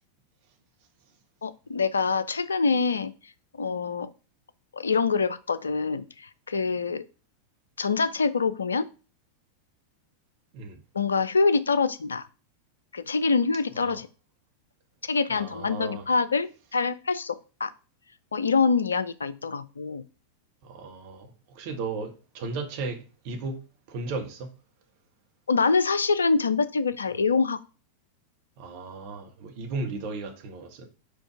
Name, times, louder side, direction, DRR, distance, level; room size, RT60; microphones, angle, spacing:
voice 1, 1.4-3.1 3.6-4.1 4.7-7.0 7.8-8.9 10.9-12.2 12.9-14.1 15.0-17.4 17.6-17.7 18.3-20.0 25.5-27.6, left 4 dB, 70° left, 0.5 m, -25 dB
voice 2, 15.3-16.1 20.6-23.0 23.2-23.6 23.9-24.5 28.6-30.8, right 3 dB, 45° right, 1.7 m, -35 dB
5.1 x 4.6 x 5.0 m
figure-of-eight pair, 90°, 0 cm